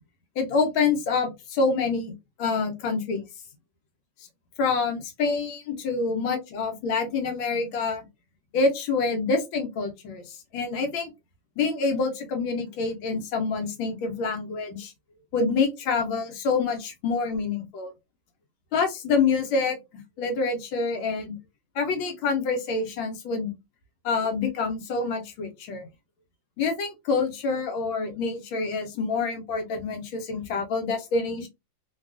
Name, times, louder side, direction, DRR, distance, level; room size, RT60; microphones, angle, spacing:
voice 1, 0.4-3.2 4.6-8.0 8.5-11.1 11.6-14.9 15.3-17.9 18.7-19.8 20.2-21.4 21.7-23.5 24.0-25.9 26.6-31.5, left 4 dB, 80° left, 1.5 m, -27 dB
3.6 x 2.3 x 2.3 m
omnidirectional pair, 2.1 m